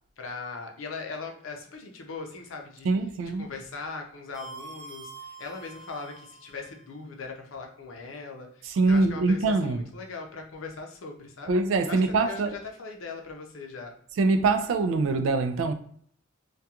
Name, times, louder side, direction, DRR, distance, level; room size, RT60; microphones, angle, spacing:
voice 1, 0.2-2.9 3.4-11.5 11.9-13.9, left 4 dB, 85° left, 0.5 m, -40 dB
voice 2, 2.8-3.5 8.6-9.9 11.5-12.6 14.2-15.7, right 3 dB, 75° right, 0.3 m, -24 dB
sound 1, 4.3-6.7, right 3 dB, 35° right, 0.8 m, -45 dB
2.3 x 2.2 x 2.8 m
head